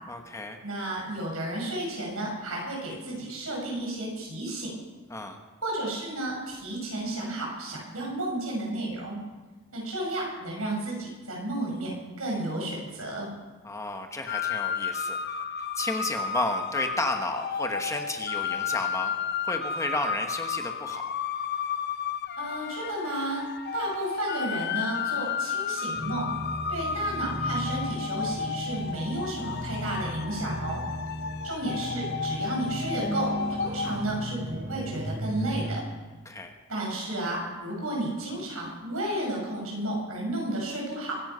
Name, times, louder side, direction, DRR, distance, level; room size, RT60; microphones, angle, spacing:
voice 1, 0.1-0.6 5.1-5.4 13.6-15.2 15.8-19.1 19.4-21.0 36.2-36.5, left 2 dB, 15° left, 4 dB, 1.2 m, -32 dB
voice 2, 0.6-4.7 5.6-9.2 9.7-13.3 22.4-23.4 23.7-26.3 26.7-30.8 31.4-35.8 36.7-41.2, right 1 dB, 90° right, -1 dB, 5.9 m, -32 dB
sound 1, 14.3-34.0, left 6 dB, 50° left, 0.7 m, -32 dB
sound 2, 25.9-35.8, equal, 45° right, 2.9 m, -35 dB
24.0 x 10.0 x 5.6 m, 1.3 s
head